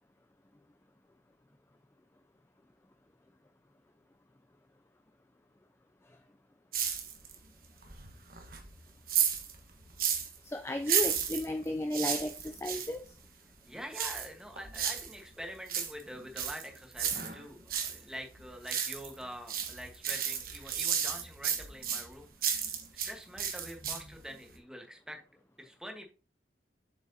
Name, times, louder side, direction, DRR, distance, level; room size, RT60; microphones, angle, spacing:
sound 1, 6.7-7.5 7.8-10.4 10.8-12.9 13.9-15.1 15.5-18.0 18.3-19.2 19.5-23.1 23.4-24.2 24.5-24.6, right 8 dB, 50° right, 1.3 m, -33 dB
voice 1, 10.4-13.0, left 1 dB, 15° left, 7 dB, 0.4 m, -34 dB
voice 2, 13.7-25.2 25.6-26.0, equal, 5° right, 3 dB, 1.3 m, -46 dB
7.8 x 6.0 x 2.8 m, 0.35 s
head